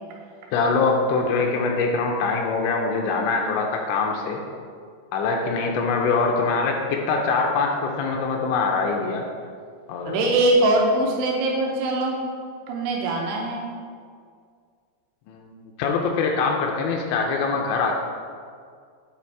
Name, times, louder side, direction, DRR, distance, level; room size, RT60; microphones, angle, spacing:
voice 1, 0.5-4.4 5.1-9.3 9.9-10.2 15.3-15.5 15.8-17.9, left 4 dB, 80° left, 1 dB, 2.9 m, -23 dB
voice 2, 10.0-12.2 12.7-13.7, right 2 dB, 80° right, -1 dB, 2.5 m, -22 dB
8.5 x 4.9 x 4.6 m, 2.1 s
omnidirectional pair, 5.5 m